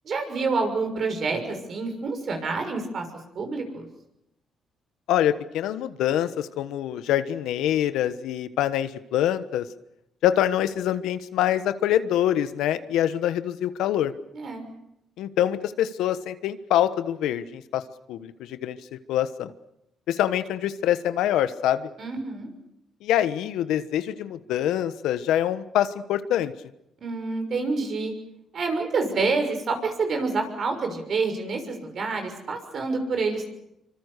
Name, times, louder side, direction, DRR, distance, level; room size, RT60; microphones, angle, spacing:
voice 1, 0.0-3.0 3.3-3.9 14.3-14.7 22.0-22.5 27.0-28.1 28.5-33.5, right 4 dB, 55° right, 5 dB, 6.4 m, -27 dB
voice 2, 5.1-9.7 10.2-14.1 15.2-17.8 18.1-19.5 20.1-21.9 23.0-26.5, left 11 dB, 90° left, 12 dB, 1.2 m, -25 dB
26.0 x 25.0 x 6.7 m, 0.83 s
cardioid pair, 90°, 0 cm